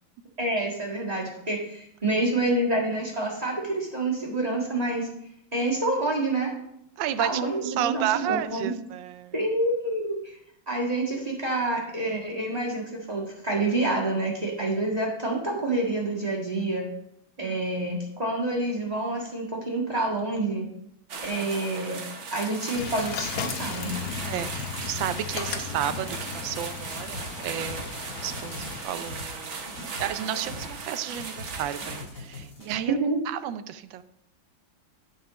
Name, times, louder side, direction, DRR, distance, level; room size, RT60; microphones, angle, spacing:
voice 1, 0.4-5.1 5.5-6.5 7.2-8.7 9.3-10.3 10.7-16.8 17.4-20.7 21.2-22.0 22.3-23.9 32.9-33.2, right 2 dB, 20° right, -3 dB, 1.7 m, -27 dB
voice 2, 7.0-9.3 17.4-17.6 24.3-29.7 30.0-34.0, right 11 dB, 75° right, 12 dB, 1.3 m, -32 dB
sound 1, 21.1-32.0, right 4 dB, 45° right, 1.0 m, -37 dB
sound 2, 22.7-28.8, left 7 dB, 65° left, 1.2 m, -36 dB
sound 3, 27.1-27.9 28.2-30.8 31.0-32.7, left 2 dB, 40° left, 3.4 m, -42 dB
11.5 x 4.4 x 5.0 m, 0.76 s
omnidirectional pair, 2.2 m